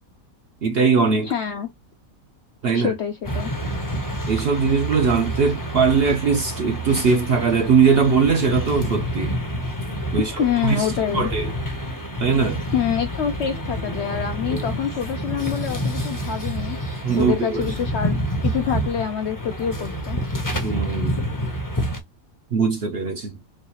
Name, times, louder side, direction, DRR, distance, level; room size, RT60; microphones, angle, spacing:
voice 1, 0.6-1.3 2.6-2.9 4.3-9.3 10.1-10.9 11.1-11.5 12.2-12.6 14.5-14.6 17.0-17.7 20.5-21.2 22.5-23.4, right 5 dB, 55° right, 0.7 m, -20 dB
voice 2, 1.2-1.7 2.7-3.5 10.4-11.3 12.7-16.8 17.2-18.2 18.4-20.2, left 8 dB, 65° left, 0.7 m, -26 dB
sound 1, 3.2-22.0, right 1 dB, 20° left, 0.6 m, -28 dB
4.5 x 2.4 x 2.8 m
omnidirectional pair, 1.6 m